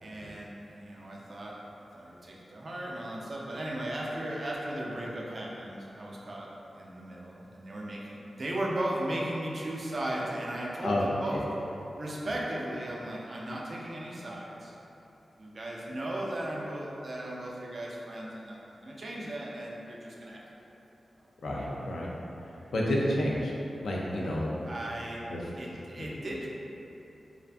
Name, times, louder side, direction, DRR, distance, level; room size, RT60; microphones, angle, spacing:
voice 1, 0.0-1.6 1.9-6.5 6.7-8.1 8.3-11.4 12.0-14.8 15.4-20.7 24.7-25.2 25.6-26.5, right 1 dB, 55° right, -4 dB, 0.4 m, -36 dB
voice 2, 21.4-22.1 22.4-23.5 23.8-24.6 25.3-25.5, left 1 dB, 90° left, -4 dB, 0.3 m, -30 dB
2.5 x 2.4 x 2.2 m, 3.0 s
cardioid pair, 70°, 0 cm